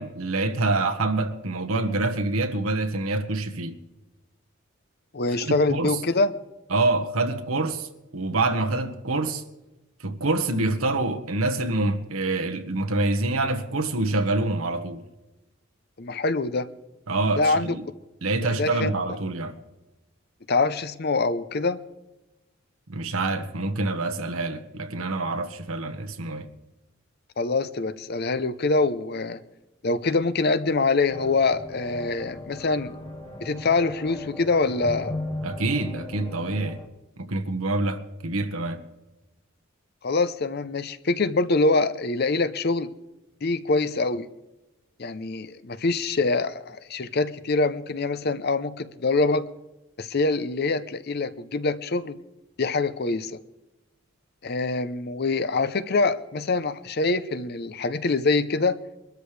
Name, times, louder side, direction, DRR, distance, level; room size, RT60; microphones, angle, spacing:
voice 1, 0.0-3.8 5.4-6.0 6.7-9.4 10.0-15.0 17.1-17.8 18.2-19.5 22.9-26.5 35.4-36.8 37.2-38.8, right 2 dB, 85° right, 1.4 m, -26 dB
voice 2, 5.1-6.3 16.0-16.7 17.4-17.7 18.6-18.9 20.5-21.8 27.4-29.4 29.8-32.9 33.4-35.2 40.0-42.9 43.4-44.3 45.0-49.5 50.0-52.2 52.6-53.4 54.4-58.8, left 3 dB, 50° left, 0.7 m, -24 dB
sound 1, 31.1-36.9, left 1 dB, 30° left, 2.0 m, -37 dB
23.5 x 13.0 x 3.4 m
head